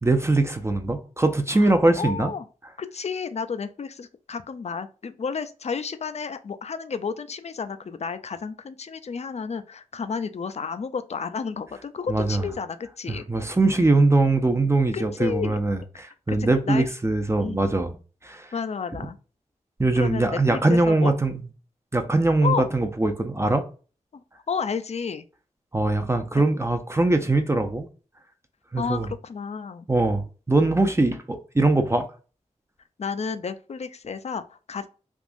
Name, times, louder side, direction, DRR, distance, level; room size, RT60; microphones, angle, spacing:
voice 1, 0.0-2.3 12.1-12.4 13.1-17.9 18.2-18.5 19.8-21.4 21.9-23.7 25.7-27.9 28.7-29.1 29.9-32.1, right 2 dB, 20° right, 0.5 m, -22 dB
voice 2, 1.5-2.5 2.8-13.2 14.9-15.6 16.3-16.9 17.4-17.7 18.5-19.2 20.0-21.1 22.4-22.7 24.1-24.2 24.5-25.2 28.8-29.9 33.0-34.9, left 5 dB, 55° left, 0.4 m, -31 dB
3.5 x 2.4 x 2.5 m
cardioid pair, 40°, 13 cm